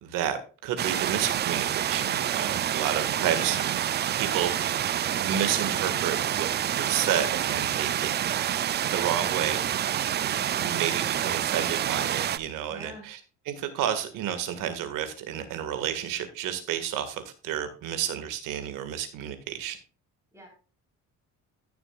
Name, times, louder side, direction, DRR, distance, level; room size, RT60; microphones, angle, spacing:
voice 1, 0.0-3.6 4.1-4.9 5.2-8.3 8.9-9.6 10.6-13.2 13.5-19.8, right 9 dB, 90° right, 9 dB, 1.9 m, -31 dB
sound 1, 0.8-12.4, right 10 dB, 35° right, 0.4 m, -28 dB
voice 2, 12.7-13.0 20.3-20.5, right 1 dB, 10° right, 0 dB, 3.9 m, -46 dB
16.0 x 7.0 x 2.4 m, 0.36 s
cardioid pair, 145°, 31 cm